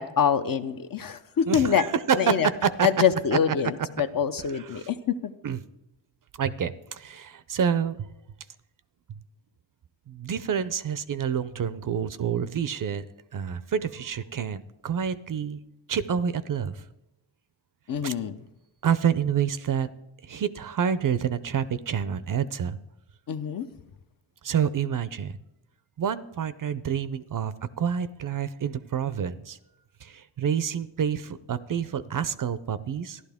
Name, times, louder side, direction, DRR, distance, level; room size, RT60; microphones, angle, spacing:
voice 1, 0.0-1.9 2.2-2.5 2.8-5.3 17.9-18.4 23.3-23.7, left 7 dB, 45° left, 9 dB, 0.7 m, -25 dB
voice 2, 1.5-2.9 4.5-4.9 5.4-5.6 6.4-8.0 10.1-13.0 13.3-15.6 15.9-16.8 18.0-18.1 18.8-19.9 20.3-22.8 24.4-25.3 26.0-29.6 30.0-33.2, right 7 dB, 45° right, 15 dB, 0.5 m, -28 dB
13.5 x 11.5 x 3.5 m, 0.91 s
cardioid pair, 75°, 46 cm